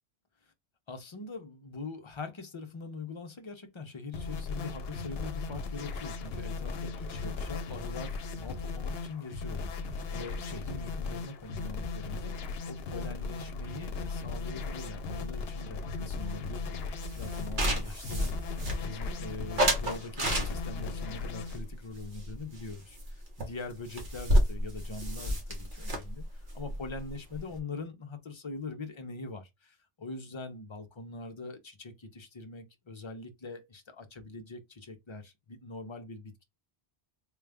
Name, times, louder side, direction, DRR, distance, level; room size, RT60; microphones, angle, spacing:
voice 1, 0.9-18.5 18.8-36.4, left 3 dB, 35° left, 0.6 m, -43 dB
sound 1, 4.1-21.6, left 4 dB, 70° left, 0.8 m, -37 dB
sound 2, 17.0-19.1 19.6-20.9 21.5-22.7 23.0-23.1 23.4-23.5 23.7-27.6, equal, 50° right, 1.3 m, -30 dB
3.8 x 2.3 x 3.4 m
omnidirectional pair, 1.1 m